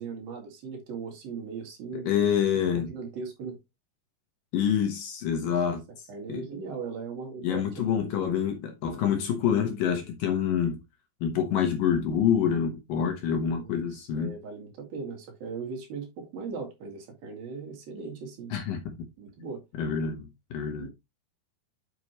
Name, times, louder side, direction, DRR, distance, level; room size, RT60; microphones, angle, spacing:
voice 1, 0.0-2.1 2.7-3.6 5.4-5.8 6.1-8.1 13.5-18.5 19.2-19.6 20.7-20.9, right 5 dB, 65° right, 3.9 m, -39 dB
voice 2, 1.9-2.9 4.5-6.4 7.4-10.8 11.2-14.3 18.5-18.8 19.8-20.9, left 8 dB, 65° left, 2.5 m, -27 dB
7.8 x 6.8 x 3.0 m
omnidirectional pair, 4.7 m